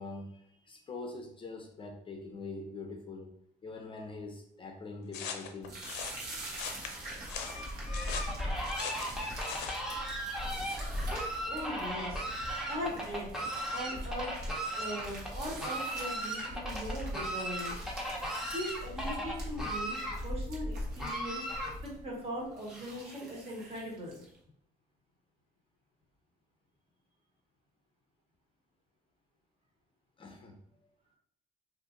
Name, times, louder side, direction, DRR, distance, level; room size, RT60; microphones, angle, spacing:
voice 1, 0.0-3.3 3.6-5.8 30.2-30.6, left 3 dB, 30° left, 2 dB, 0.5 m, -44 dB
sound 1, 5.1-9.8, left 7 dB, 90° left, 0.5 m, -41 dB
sound 2, 5.6-24.4, right 1 dB, 65° right, 1.1 m, -46 dB
Fowl, 7.3-22.0, equal, 5° right, 0.7 m, -36 dB
voice 2, 11.4-12.3 12.7-13.3 13.7-14.3 14.6-17.8 18.4-24.2, equal, 35° right, -2 dB, 1.2 m, -40 dB
2.6 x 2.5 x 3.6 m, 0.70 s
cardioid pair, 110°, 17 cm